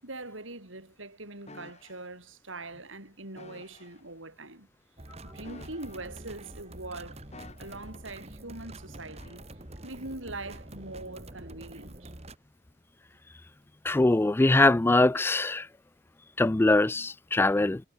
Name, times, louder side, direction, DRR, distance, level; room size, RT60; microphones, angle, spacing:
voice 1, 0.0-4.7 5.2-7.2 7.6-9.4 9.8-12.1, right 2 dB, 85° right, 8.0 m, -42 dB
sound 1, 1.5-2.1 3.4-4.0 5.4-6.3 7.3-8.1 9.2-9.4, left 2 dB, 35° left, 4.4 m, -51 dB
sound 2, 5.0-12.4, right 1 dB, 35° right, 3.3 m, -46 dB
voice 2, 13.8-15.7 16.4-17.8, left 2 dB, 10° left, 0.3 m, -22 dB
head